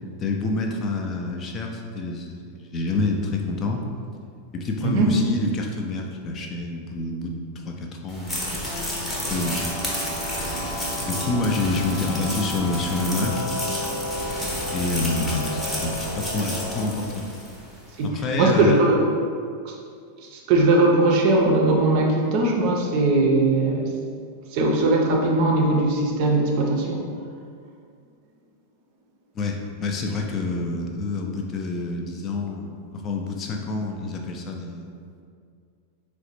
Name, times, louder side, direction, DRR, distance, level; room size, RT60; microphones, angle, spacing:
voice 1, 0.2-3.8 4.5-8.7 9.0-9.6 10.5-10.7 11.0-13.4 14.7-17.3 18.0-18.8 29.4-34.9, left 2 dB, 30° left, 2 dB, 0.3 m, -28 dB
sound 1, 8.1-17.6, equal, 15° left, 0.7 m, -32 dB
sound 2, 8.6-16.9, left 1 dB, 75° left, 0.6 m, -33 dB
voice 2, 18.0-19.0 19.6-19.7 20.3-23.9 24.5-27.0, right 2 dB, 45° right, 0 dB, 0.5 m, -20 dB
4.0 x 2.1 x 2.9 m, 2.3 s
figure-of-eight pair, 90°, 0 cm